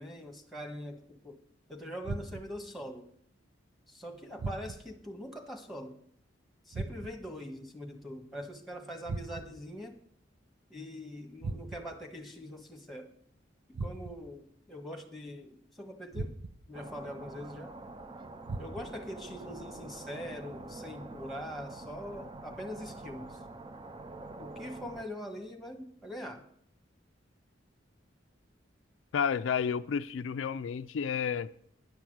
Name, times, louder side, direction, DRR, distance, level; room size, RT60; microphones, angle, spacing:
voice 1, 0.0-1.4 1.7-3.1 3.9-6.0 6.6-10.0 10.7-13.1 13.8-16.4 16.7-17.8 18.6-23.4 24.4-26.4, equal, ahead, 1.4 m, -43 dB
sound 1, 2.0-2.7 4.4-5.0 6.7-7.4 9.1-9.7 11.4-12.0 13.7-14.4 16.1-16.8 18.5-19.1, right 3 dB, 80° right, 0.7 m, -39 dB
sound 2, 16.7-25.0, right 2 dB, 25° right, 0.5 m, -46 dB
voice 2, 29.1-31.5, left 7 dB, 80° left, 0.4 m, -31 dB
10.5 x 5.9 x 7.8 m
head